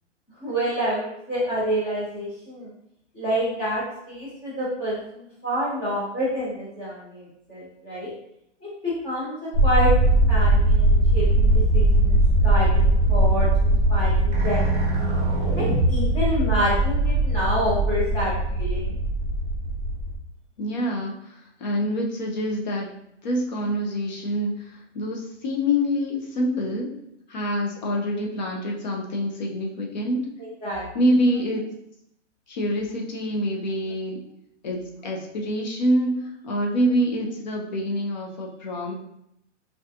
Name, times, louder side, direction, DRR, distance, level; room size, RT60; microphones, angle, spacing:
voice 1, 0.4-2.7 3.1-8.1 8.6-15.2 15.5-18.9 30.4-30.8, equal, 15° left, -9 dB, 0.9 m, -28 dB
sound 1, 9.5-20.2, right 1 dB, 30° right, 0.9 m, -20 dB
voice 2, 20.6-21.1 21.6-22.9 23.2-24.6 24.9-26.9 27.3-30.3 30.9-31.7 32.5-34.2 34.6-38.9, equal, 40° left, 0 dB, 0.6 m, -26 dB
3.7 x 2.3 x 2.7 m, 0.78 s
hypercardioid pair, 175°, 36 cm